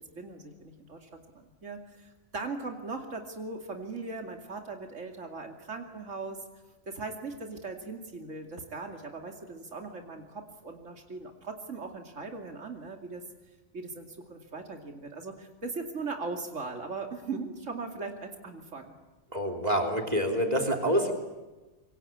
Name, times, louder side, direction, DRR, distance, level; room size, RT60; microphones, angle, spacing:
voice 1, 0.0-6.4 6.9-13.2 13.7-18.9, right 3 dB, 85° right, 3 dB, 2.9 m, -39 dB
voice 2, 19.3-21.1, equal, 35° right, 6 dB, 3.4 m, -27 dB
26.0 x 24.5 x 8.7 m, 1.2 s
omnidirectional pair, 1.3 m